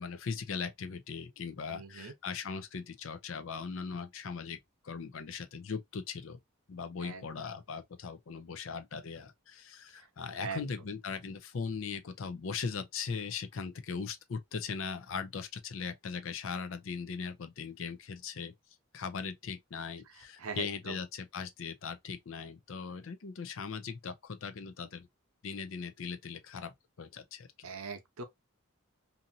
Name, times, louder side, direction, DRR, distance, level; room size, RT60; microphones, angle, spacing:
voice 1, 0.0-4.6 4.8-6.4 6.7-18.5 18.9-25.1 25.4-27.7, left 5 dB, 70° left, 0.5 m, -39 dB
voice 2, 1.7-2.1 7.0-7.3 10.0-10.1 10.4-10.7 20.4-21.0 27.6-28.2, right 5 dB, 90° right, 0.7 m, -41 dB
2.6 x 2.6 x 2.6 m
head